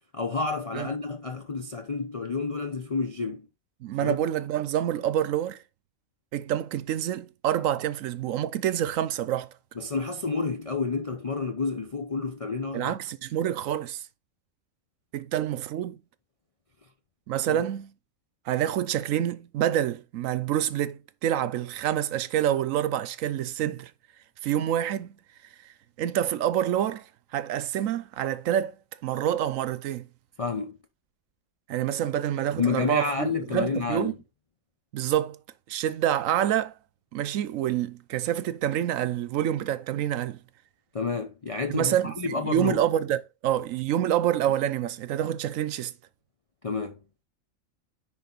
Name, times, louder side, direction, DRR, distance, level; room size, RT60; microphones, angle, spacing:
voice 1, 0.1-3.5 4.0-4.2 9.8-13.0 17.5-17.7 30.4-30.8 32.6-34.1 40.9-42.8 46.6-47.0, left 4 dB, 35° left, 0.6 m, -30 dB
voice 2, 3.8-5.6 6.3-9.5 12.7-14.0 15.1-16.0 17.3-17.9 18.5-23.9 24.4-25.2 26.0-27.0 27.3-28.7 29.0-30.1 31.7-34.1 34.9-35.4 35.7-36.7 37.1-40.4 41.7-45.9, right 11 dB, 80° right, 1.0 m, -27 dB
10.5 x 4.1 x 3.9 m
omnidirectional pair, 1.4 m